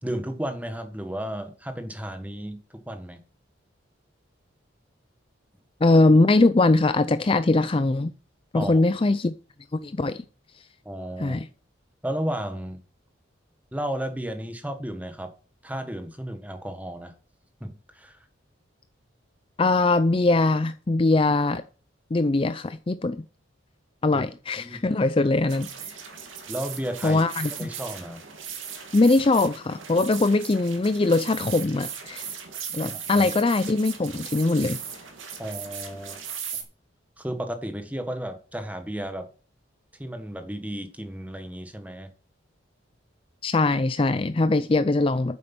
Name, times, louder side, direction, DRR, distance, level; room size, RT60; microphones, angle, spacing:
voice 1, 0.0-3.2 8.5-8.8 10.8-11.4 12.0-12.8 13.7-15.3 15.6-17.1 17.6-18.2 24.1-24.2 24.6-24.8 26.5-27.2 27.6-28.2 32.9-33.3 35.4-36.2 37.2-39.3 40.0-42.1, right 1 dB, 10° right, 1.4 m, -33 dB
voice 2, 5.8-8.1 8.5-9.3 9.7-10.2 11.2-11.5 19.6-21.6 22.1-23.2 24.0-25.9 27.0-27.7 28.9-32.3 32.7-34.8 43.4-45.4, left 2 dB, 30° left, 0.4 m, -21 dB
sound 1, 25.5-36.6, right 7 dB, 85° right, 2.6 m, -38 dB
9.4 x 7.6 x 6.0 m
head